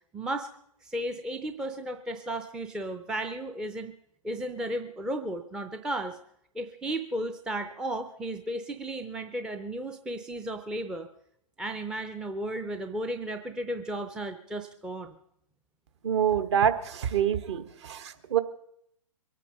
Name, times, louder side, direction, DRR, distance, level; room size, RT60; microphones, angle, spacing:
voice 1, 0.1-0.5 0.8-3.9 4.2-6.2 6.5-11.1 11.6-15.2, right 1 dB, 5° right, 7 dB, 0.5 m, -34 dB
voice 2, 16.0-18.4, right 9 dB, 45° right, 10 dB, 1.3 m, -26 dB
23.0 x 9.1 x 5.4 m, 0.72 s
figure-of-eight pair, 120°, 19 cm